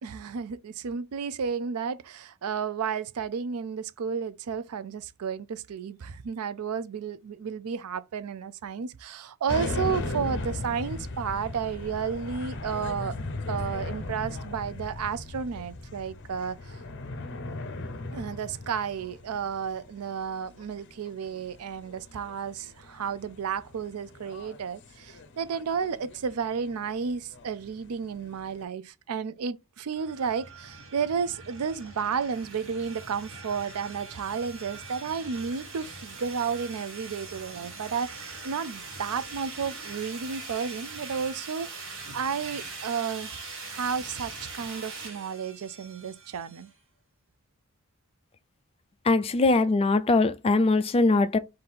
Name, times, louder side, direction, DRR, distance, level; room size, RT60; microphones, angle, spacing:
voice 1, 0.0-13.2 13.5-16.8 18.1-43.4 43.7-46.7, right 6 dB, 85° right, 0.4 m, -32 dB
sound 1, 9.5-28.6, left 2 dB, 55° left, 0.7 m, -38 dB
sound 2, 29.9-46.7, right 3 dB, 60° right, 1.5 m, -42 dB
voice 2, 49.1-51.4, left 3 dB, 25° left, 0.3 m, -21 dB
3.8 x 2.7 x 4.2 m
head